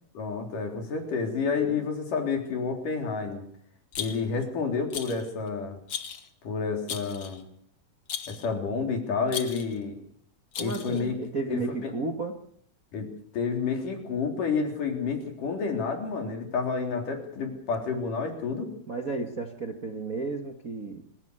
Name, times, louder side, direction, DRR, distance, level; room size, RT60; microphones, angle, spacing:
voice 1, 0.1-3.4 4.0-5.8 6.4-7.4 8.3-10.0 10.6-11.2 11.5-11.9 12.9-18.7, left 5 dB, 70° left, 3 dB, 5.2 m, -30 dB
Rattle, 3.9-4.4 4.9-5.3 5.9-6.3 6.9-7.4 8.1-8.5 9.3-9.8 10.5-11.1, left 8 dB, 50° left, 2.1 m, -36 dB
voice 2, 10.6-12.3 18.9-21.0, right 3 dB, 40° right, 4 dB, 1.2 m, -33 dB
26.5 x 16.0 x 6.9 m, 0.65 s
omnidirectional pair, 3.8 m